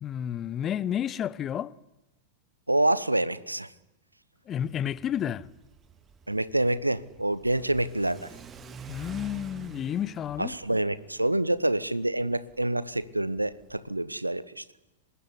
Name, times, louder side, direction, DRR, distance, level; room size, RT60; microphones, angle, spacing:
voice 1, 0.0-1.7 4.5-5.5 8.9-10.6, left 10 dB, 30° left, 0.9 m, -31 dB
voice 2, 2.7-3.7 6.3-8.3 10.4-14.6, right 1 dB, 85° right, 1.0 m, -27 dB
Car / Accelerating revving vroom, 4.6-14.0, right 6 dB, 25° right, 2.1 m, -48 dB
25.5 x 21.0 x 9.9 m
figure-of-eight pair, 90°, 0 cm